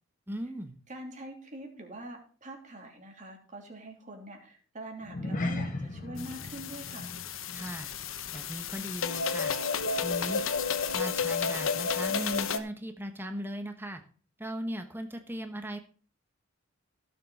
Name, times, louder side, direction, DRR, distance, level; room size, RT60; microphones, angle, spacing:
voice 1, 0.3-0.7 7.5-7.9 8.3-9.6 10.0-10.4 10.9-14.0 14.4-15.8, equal, 10° right, 6 dB, 1.1 m, -38 dB
voice 2, 0.9-7.1, right 1 dB, 40° right, 2 dB, 3.1 m, -44 dB
sound 1, 5.0-9.6 9.9-10.2 10.7-10.8, left 2 dB, 40° left, 1.6 m, -38 dB
sound 2, 6.2-12.6, left 5 dB, 80° left, 1.1 m, -32 dB
16.0 x 7.2 x 4.2 m, 0.41 s
head